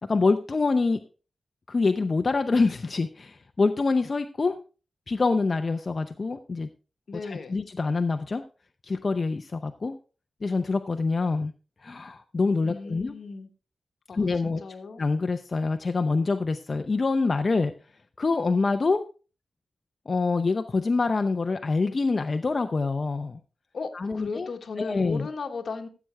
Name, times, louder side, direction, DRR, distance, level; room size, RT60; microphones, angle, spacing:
voice 1, 0.0-1.0 1.7-4.6 5.1-6.7 7.1-8.4 8.8-10.0 10.4-11.5 11.8-13.1 14.1-14.6 15.0-17.7 18.2-19.0 20.1-23.4 23.9-24.5 24.8-25.3, left 3 dB, 50° left, 7 dB, 0.6 m, -25 dB
voice 2, 7.1-7.6 12.6-13.5 14.1-15.0 23.7-25.9, left 4 dB, 75° left, 6 dB, 1.4 m, -36 dB
15.0 x 7.8 x 3.4 m, 0.35 s
cardioid pair, 75°, 0 cm